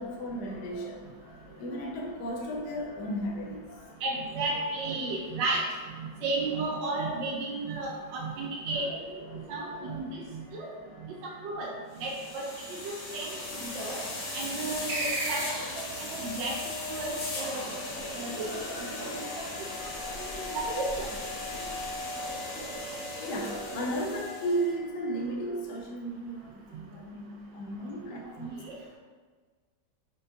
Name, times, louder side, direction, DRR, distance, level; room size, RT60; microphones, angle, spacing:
voice 1, 0.0-4.0 8.7-11.4 17.8-26.5 26.8-29.0, equal, 75° left, -2 dB, 1.2 m, -37 dB
voice 2, 4.0-5.6 6.0-8.9 9.3-10.7 11.0-11.7 12.0-12.5 12.8-14.0 14.3-15.5 15.8-16.6 16.9-17.7 18.1-18.5 20.2-21.1 23.7-23.9 28.4-28.8, right 3 dB, 90° right, -2 dB, 1.3 m, -33 dB
sound 1, 11.9-24.7, left 1 dB, 55° left, 1.2 m, -38 dB
sound 2, 14.9-16.1, right 2 dB, 70° right, 1.3 m, -33 dB
5.3 x 2.6 x 3.3 m, 1.5 s
omnidirectional pair, 1.9 m